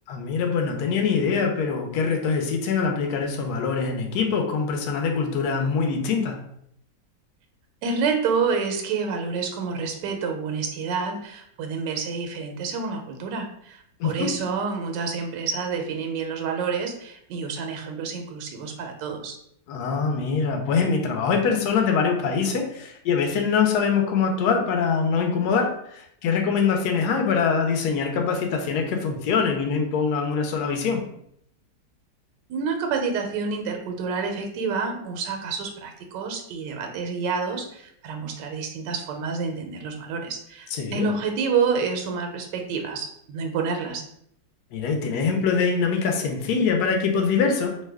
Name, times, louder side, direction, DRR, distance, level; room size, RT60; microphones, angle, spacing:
voice 1, 0.1-6.4 14.0-14.3 19.7-31.0 40.7-41.0 44.7-47.7, left 5 dB, 75° left, 3 dB, 1.1 m, -23 dB
voice 2, 7.8-19.3 32.5-44.0, right 5 dB, 85° right, 4 dB, 1.2 m, -28 dB
3.0 x 2.2 x 3.4 m, 0.71 s
omnidirectional pair, 1.8 m